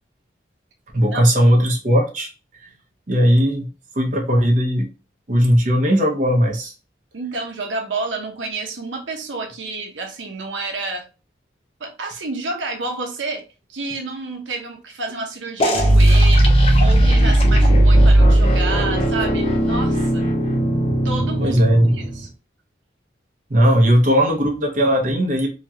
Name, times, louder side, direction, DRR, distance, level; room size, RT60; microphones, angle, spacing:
voice 1, 0.9-2.3 2.6-2.7 3.1-3.7 3.9-4.9 5.3-6.7 21.4-22.0 23.5-25.5, equal, 45° right, 0.8 m, -17 dB
voice 2, 7.1-11.1 11.8-13.4 13.7-16.5 16.8-20.2 21.0-22.3, right 3 dB, 90° right, 0.8 m, -29 dB
sound 1, 15.6-22.2, right 1 dB, 30° left, 0.6 m, -16 dB
2.9 x 2.3 x 2.8 m
head